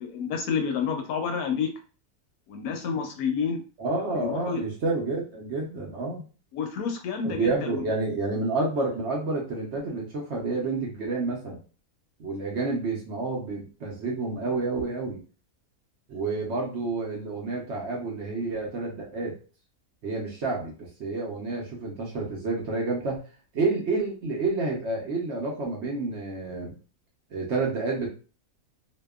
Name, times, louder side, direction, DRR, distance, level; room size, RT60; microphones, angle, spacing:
voice 1, 0.0-1.7 2.5-3.6 4.1-4.6 6.5-7.9, left 6 dB, 80° left, 4 dB, 1.1 m, -29 dB
voice 2, 3.8-6.2 7.2-11.6 12.2-15.2 16.1-19.4 20.0-23.2 23.5-26.8 27.3-28.1, right 3 dB, 60° right, -2 dB, 0.8 m, -29 dB
2.7 x 2.2 x 2.2 m, 0.35 s
omnidirectional pair, 1.6 m